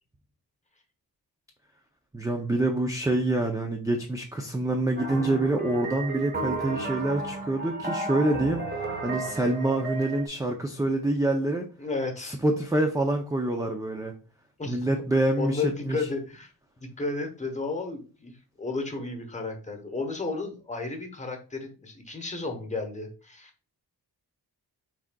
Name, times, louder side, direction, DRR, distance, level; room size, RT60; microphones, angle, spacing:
voice 1, 2.1-11.7 12.3-14.1 14.7-16.1, right 2 dB, 10° right, 2 dB, 0.4 m, -26 dB
sound 1, 5.0-10.3, right 2 dB, 25° right, 1.0 m, -33 dB
voice 2, 11.8-12.4 14.6-14.8 15.4-16.5 17.0-23.5, left 3 dB, 20° left, 4 dB, 0.9 m, -33 dB
6.0 x 3.8 x 2.2 m, 0.37 s
wide cardioid pair, 125°, 40 cm